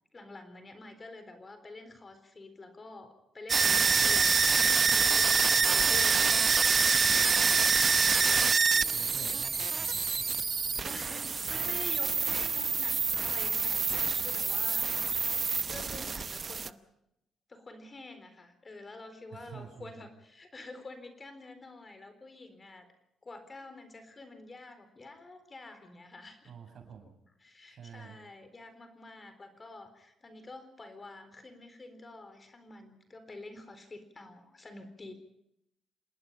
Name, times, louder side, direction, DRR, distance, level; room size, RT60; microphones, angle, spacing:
voice 1, 0.1-7.5 10.8-14.9 15.7-16.8 17.5-22.9 23.2-26.5 27.4-35.1, left 2 dB, 30° left, 9 dB, 4.0 m, -48 dB
sound 1, 3.5-16.7, right 5 dB, 40° right, 0.8 m, -26 dB
voice 2, 3.9-4.6 5.5-6.4 8.6-11.1 11.5-11.8 19.3-20.1 26.4-27.1 27.7-28.2, right 6 dB, 60° right, 5 dB, 6.8 m, -50 dB
27.0 x 19.5 x 5.7 m, 0.80 s
cardioid pair, 90°, 0 cm